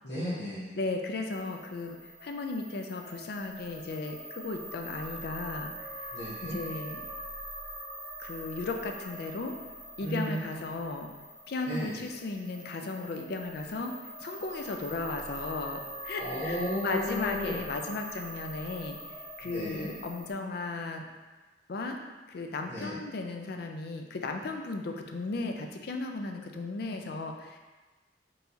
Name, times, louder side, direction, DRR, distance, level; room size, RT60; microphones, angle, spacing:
voice 1, 0.0-0.8 6.1-6.6 10.0-10.5 11.7-12.0 16.2-17.7 19.4-19.9 22.7-23.0, equal, 75° left, -12 dB, 1.2 m, -34 dB
voice 2, 0.7-5.7 6.4-7.0 8.2-9.6 10.0-11.1 11.5-19.0 19.4-21.1 21.7-22.0 22.3-27.6, left 3 dB, 60° left, 4 dB, 0.4 m, -35 dB
sound 1, 1.3-20.3, right 1 dB, 75° right, 0.9 m, -43 dB
4.5 x 3.2 x 2.7 m, 1.2 s
head